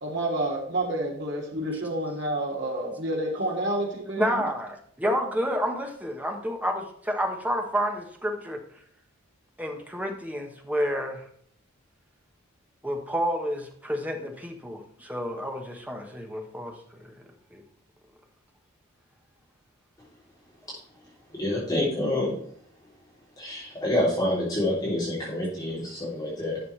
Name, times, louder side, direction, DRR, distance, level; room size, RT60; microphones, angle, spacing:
voice 1, 0.0-4.4, right 1 dB, 55° right, -1 dB, 2.7 m, -29 dB
voice 2, 4.2-8.6 9.6-11.2 12.8-17.1 17.5-17.6 25.6-25.7, equal, 5° right, 2 dB, 1.3 m, -30 dB
voice 3, 21.4-22.3 23.4-26.6, left 1 dB, 15° left, -8 dB, 3.4 m, -27 dB
11.5 x 6.7 x 3.3 m, 0.64 s
head